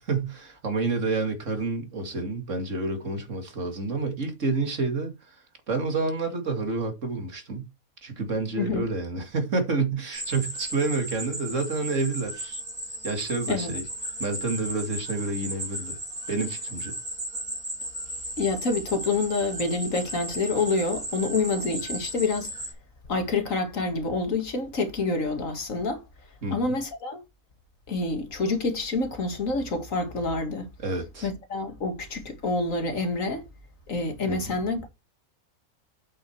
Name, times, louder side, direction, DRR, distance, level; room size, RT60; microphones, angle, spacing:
voice 1, 0.1-5.4 5.7-7.7 8.0-12.6 13.0-13.8 14.2-16.0 16.3-16.9 26.4-26.8 30.8-31.3 34.3-34.5, right 3 dB, 60° right, 2.6 m, -29 dB
sound 1, 10.1-22.7, right 1 dB, 35° right, 4.8 m, -35 dB
voice 2, 18.4-22.5 23.1-26.0 26.5-27.2 27.9-30.7 31.2-33.4 33.9-34.9, left 3 dB, 65° left, 2.3 m, -27 dB
8.1 x 6.4 x 4.5 m
omnidirectional pair, 1.5 m